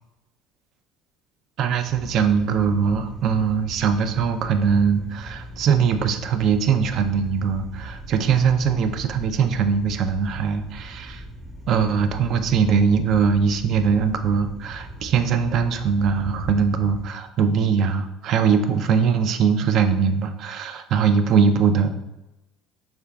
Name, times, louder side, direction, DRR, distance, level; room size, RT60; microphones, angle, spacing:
voice 1, 1.6-11.2 11.7-21.9, right 6 dB, 55° right, 8 dB, 0.3 m, -21 dB
sound 1, 1.8-17.0, equal, 20° right, 0.9 m, -39 dB
3.6 x 3.3 x 2.3 m, 0.97 s
hypercardioid pair, 80°, 0 cm